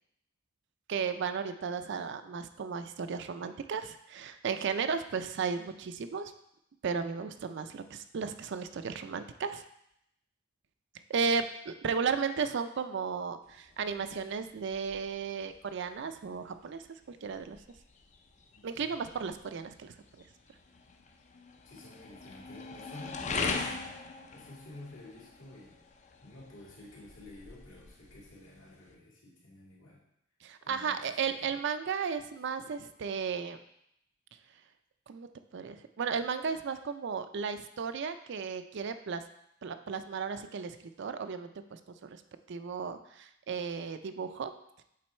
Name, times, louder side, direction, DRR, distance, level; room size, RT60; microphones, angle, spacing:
voice 1, 0.9-6.3 6.8-9.6 11.1-16.8 17.1-17.6 18.6-19.9 30.4-33.6 35.1-35.3 35.5-39.2 39.6-42.2 42.5-44.5, right 6 dB, 60° right, 10 dB, 0.4 m, -34 dB
sound 1, 13.4-28.9, left 4 dB, 35° left, 0.5 m, -42 dB
voice 2, 18.5-19.0 21.6-24.0 24.3-25.8 26.2-30.0 30.6-31.6, left 2 dB, 70° left, -5 dB, 2.3 m, -51 dB
7.5 x 3.9 x 4.3 m, 0.78 s
head